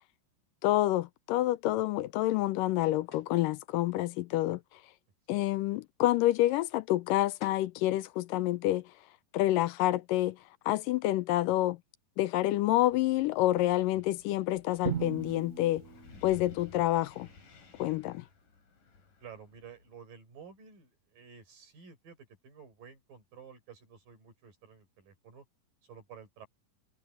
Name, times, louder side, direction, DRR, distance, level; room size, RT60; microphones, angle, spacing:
voice 1, 0.6-4.6 5.3-8.9 9.3-10.4 10.7-11.8 12.2-15.8 16.2-17.3 17.8-18.3, left 15 dB, 85° left, 2.3 m, -28 dB
sound 1, 3.1-3.4 7.1-7.2 7.4-7.8, left 6 dB, 35° left, 3.0 m, -51 dB
Wind, 12.7-20.0, left 4 dB, 70° left, 6.0 m, -55 dB
Drum, 14.8-16.9, right 8 dB, 55° right, 0.8 m, -38 dB
voice 2, 19.2-25.5 25.8-26.5, right 6 dB, 75° right, 7.1 m, -52 dB
omnidirectional pair, 4.0 m